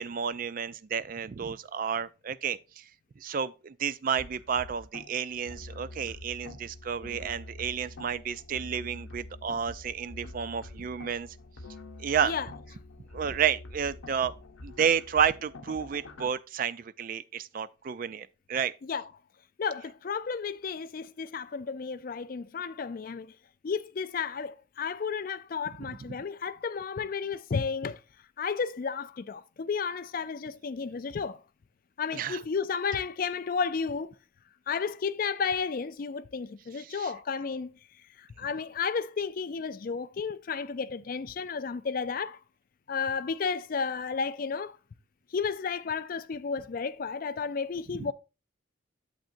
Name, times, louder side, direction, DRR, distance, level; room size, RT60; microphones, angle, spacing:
voice 1, 0.0-2.8 3.2-11.3 12.0-12.3 13.1-14.3 14.6-18.7 25.8-25.9 32.1-32.4 36.8-37.1 48.0-48.1, right 7 dB, 40° right, 0.3 m, -31 dB
sound 1, 4.2-16.3, left 2 dB, 80° left, 0.9 m, -46 dB
voice 2, 19.6-23.3 23.6-28.0 28.4-31.4 32.0-34.2 34.7-37.8 38.2-42.4 42.9-44.8 45.3-48.1, left 5 dB, 45° left, 0.4 m, -32 dB
8.9 x 7.5 x 2.6 m
head